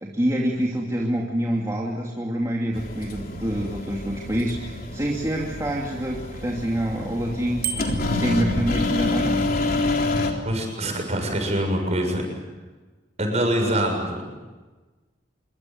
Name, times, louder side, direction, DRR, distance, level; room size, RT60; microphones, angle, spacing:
voice 1, 0.0-7.6 8.1-9.5 10.2-10.3, equal, 20° right, -2 dB, 2.8 m, -26 dB
sound 1, 2.7-10.3, left 2 dB, 50° left, 3.8 m, -27 dB
Bicycle bell, 7.6-8.2, right 7 dB, 55° right, 3.2 m, -30 dB
voice 2, 10.4-12.2 13.2-14.2, right 1 dB, 35° right, 3 dB, 7.1 m, -24 dB
27.0 x 24.0 x 8.0 m, 1.2 s
head